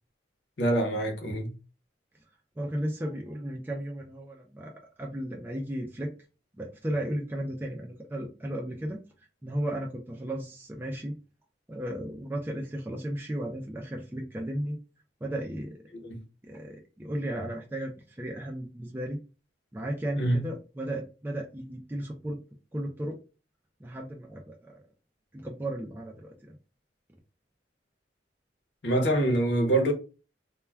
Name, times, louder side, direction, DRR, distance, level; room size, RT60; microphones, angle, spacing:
voice 1, 0.6-1.5 15.9-16.2 20.2-20.4 28.8-29.9, right 1 dB, 70° left, 0.8 m, -25 dB
voice 2, 2.6-6.1 6.5-9.0 9.4-11.1 11.7-14.8 15.2-15.8 16.4-19.2 19.7-22.4 22.7-23.2 23.8-24.8 25.3-26.5, right 1 dB, 10° right, 0.4 m, -35 dB
2.2 x 2.2 x 3.2 m
head